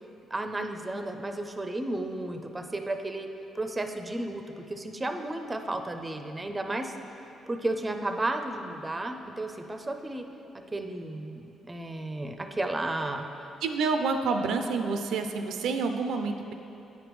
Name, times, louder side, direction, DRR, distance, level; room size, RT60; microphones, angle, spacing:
voice 1, 0.3-3.3 3.5-6.9 7.5-10.2 10.7-13.3, right 2 dB, 20° right, 6 dB, 0.4 m, -33 dB
voice 2, 13.6-16.5, right 4 dB, 80° right, 6 dB, 0.3 m, -28 dB
9.3 x 5.1 x 3.1 m, 3.0 s
cardioid pair, 90°, 0 cm